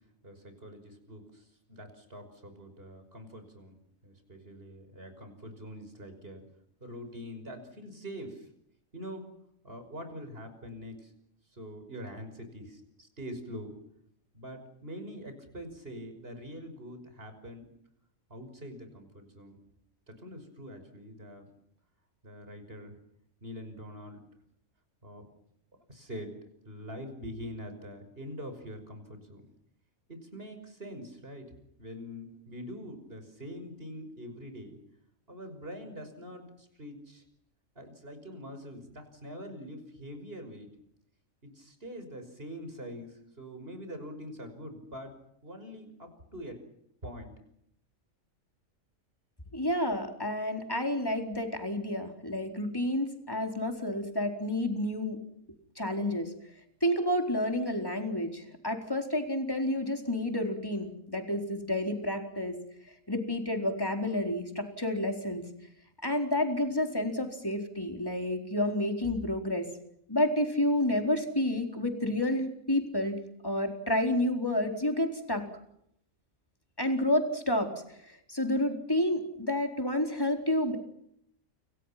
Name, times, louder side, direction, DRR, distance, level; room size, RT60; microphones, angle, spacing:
voice 1, 0.2-6.5 6.8-8.5 8.9-9.3 9.6-11.1 11.5-13.7 14.3-17.7 18.3-19.6 20.1-21.5 22.2-23.0 23.4-24.2 25.0-25.2 25.9-26.4 26.6-29.5 30.1-31.5 31.8-34.8 35.3-37.2 37.8-40.7 41.4-45.1 45.4-46.6 47.0-47.3, equal, 45° right, 7 dB, 6.1 m, -44 dB
voice 2, 49.5-55.2 55.8-56.3 56.8-62.6 63.1-65.5 66.0-69.7 70.1-73.2 73.4-75.4 76.8-80.8, left 1 dB, 15° left, 4 dB, 4.3 m, -30 dB
30.0 x 25.5 x 5.9 m, 0.73 s
omnidirectional pair, 1.4 m